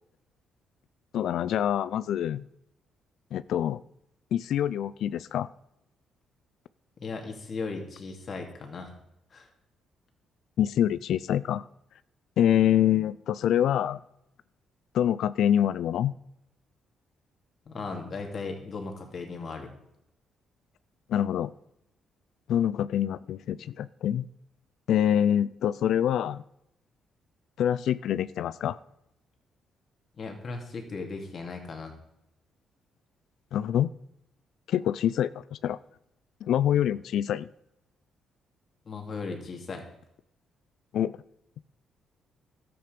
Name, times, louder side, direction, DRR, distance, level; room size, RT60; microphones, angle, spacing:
voice 1, 1.1-2.5 3.3-3.8 4.3-5.5 10.6-11.6 12.4-14.0 14.9-16.1 21.1-21.5 22.5-24.3 24.9-26.4 27.6-28.8 33.5-33.9 34.7-35.8 36.4-37.5 40.9-41.2, left 10 dB, 75° left, 17 dB, 0.4 m, -25 dB
voice 2, 7.0-8.9 9.3-9.5 17.7-19.7 30.2-31.9 38.8-39.8, left 4 dB, 45° left, 3 dB, 2.8 m, -37 dB
12.5 x 8.8 x 5.2 m, 0.80 s
cardioid pair, 90°, 0 cm